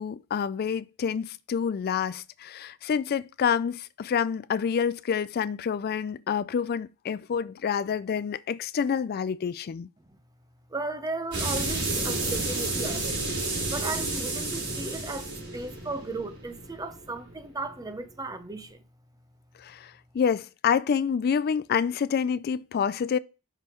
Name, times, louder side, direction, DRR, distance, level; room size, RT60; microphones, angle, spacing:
voice 1, 0.0-9.9 19.6-23.2, left 7 dB, 45° left, 0.3 m, -28 dB
voice 2, 10.7-13.2 13.7-18.8, right 2 dB, 15° right, 0.8 m, -36 dB
sound 1, 11.3-17.8, right 2 dB, 85° right, 3.7 m, -31 dB
6.0 x 5.3 x 4.5 m
head